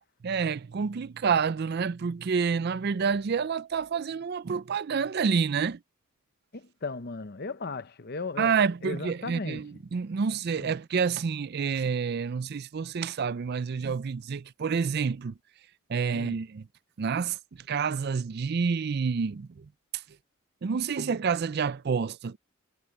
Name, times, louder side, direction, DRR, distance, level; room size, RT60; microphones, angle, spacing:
voice 1, 0.2-5.8 8.4-15.3 15.9-16.7 17.0-17.4 17.7-19.7 20.6-22.4, right 6 dB, 50° right, 0.4 m, -28 dB
voice 2, 6.5-8.5 8.8-9.7 10.6-10.7 16.1-16.4, left 3 dB, 50° left, 0.9 m, -36 dB
head